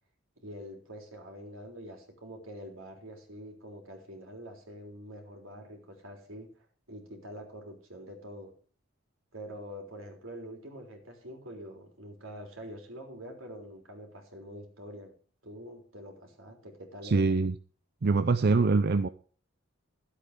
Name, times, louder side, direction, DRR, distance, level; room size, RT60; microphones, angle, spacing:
voice 1, 0.4-8.5 9.3-15.1 15.4-17.2, equal, 85° right, 2 dB, 3.8 m, -45 dB
voice 2, 17.0-17.6 18.0-19.1, right 3 dB, 50° right, 11 dB, 0.5 m, -24 dB
13.0 x 8.2 x 5.2 m, 0.41 s
head